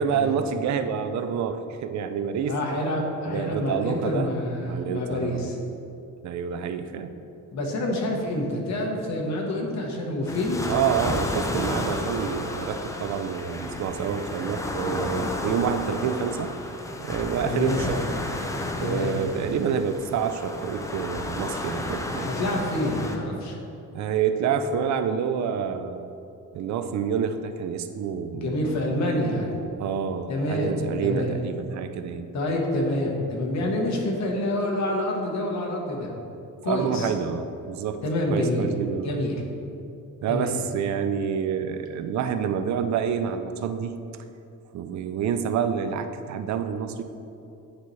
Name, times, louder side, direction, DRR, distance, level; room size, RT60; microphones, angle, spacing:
voice 1, 0.0-2.6 3.3-4.3 4.6-5.5 6.2-7.1 10.7-16.5 17.0-18.1 18.8-22.3 23.9-26.0 26.5-28.6 29.8-32.3 33.6-33.7 36.7-38.0 38.3-39.1 40.2-44.0 44.7-47.0, right 7 dB, 60° right, 9 dB, 0.5 m, -28 dB
voice 2, 2.5-5.6 7.5-10.6 17.4-17.8 18.8-19.3 22.2-23.6 28.3-29.7 30.3-30.7 31.0-31.3 32.3-36.1 36.6-37.1 38.0-38.7 39.0-39.4 40.3-40.6, left 1 dB, 55° left, 0 dB, 1.2 m, -27 dB
sound 1, 10.3-23.2, left 1 dB, 10° left, 0.4 m, -32 dB
9.5 x 4.1 x 3.1 m, 2.7 s
cardioid pair, 135°, 33 cm